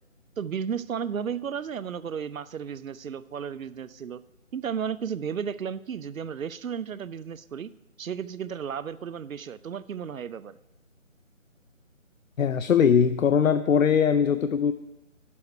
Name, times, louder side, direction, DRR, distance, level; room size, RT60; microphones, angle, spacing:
voice 1, 0.4-4.2 4.5-7.7 8.0-10.6, right 7 dB, 85° right, 16 dB, 0.6 m, -33 dB
voice 2, 12.4-14.7, left 7 dB, 85° left, 11 dB, 0.5 m, -21 dB
9.6 x 7.0 x 4.9 m, 0.99 s
figure-of-eight pair, 165°, 39 cm